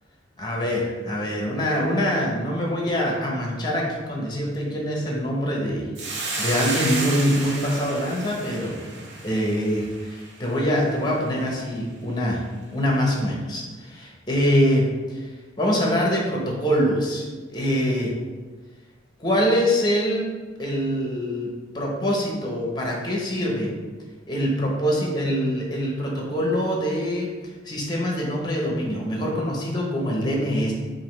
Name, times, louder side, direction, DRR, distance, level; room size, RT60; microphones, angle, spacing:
voice 1, 0.4-12.4 12.7-15.3 15.6-17.3 17.5-18.2 19.2-20.3 20.6-23.7 24.3-27.3 27.6-30.7, equal, 20° left, -2 dB, 0.8 m, -24 dB
Hiss, 6.0-10.5, right 2 dB, 65° right, 0.7 m, -32 dB
5.4 x 2.6 x 3.1 m, 1.4 s
head